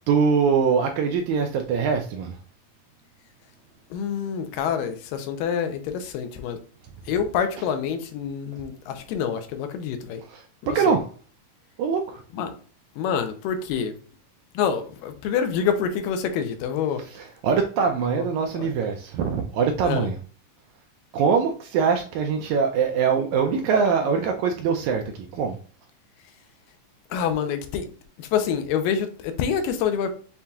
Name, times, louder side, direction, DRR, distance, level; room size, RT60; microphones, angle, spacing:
voice 1, 0.1-2.4 10.3-11.0 11.8-12.2 17.2-20.2 21.1-25.6, right 6 dB, 90° right, 1.6 m, -23 dB
voice 2, 3.9-6.6 7.1-10.2 10.6-11.0 12.3-12.6 13.0-13.9 14.5-17.1 18.0-18.3 18.5-18.7 19.8-20.1 27.1-30.1, left 7 dB, 90° left, 2.3 m, -27 dB
7.1 x 2.7 x 2.2 m
omnidirectional pair, 3.9 m